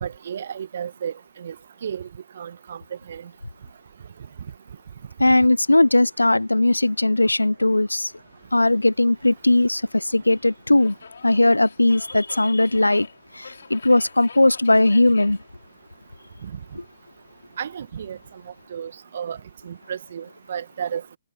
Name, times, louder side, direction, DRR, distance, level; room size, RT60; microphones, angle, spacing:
voice 1, 0.0-1.5 1.8-2.1 2.4-2.8 3.1-3.3 16.4-16.6 17.6-18.2 18.7-19.4 19.6-21.0, right 8 dB, 55° right, 1.5 m, -32 dB
voice 2, 5.2-8.1 8.5-11.0 11.2-13.1 13.3-15.4, left 2 dB, 90° left, 0.4 m, -18 dB
Subway metro underground, 8.1-18.6, left 5 dB, 65° left, 3.9 m, -48 dB
figure-of-eight pair, 130°, 0 cm